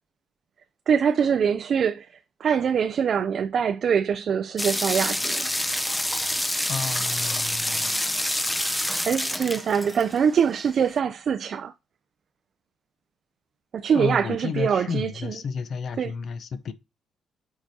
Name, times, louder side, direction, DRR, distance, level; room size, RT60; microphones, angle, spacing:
voice 1, 0.9-2.1 2.4-5.5 9.1-11.7 13.7-15.3 16.0-16.1, right 7 dB, 55° right, 0.3 m, -23 dB
sound 1, 4.6-10.4, left 1 dB, 10° left, 0.6 m, -27 dB
voice 2, 6.7-8.4 8.8-9.0 13.9-16.7, left 6 dB, 60° left, 0.6 m, -32 dB
8.1 x 4.7 x 2.7 m
cardioid pair, 90°, 0 cm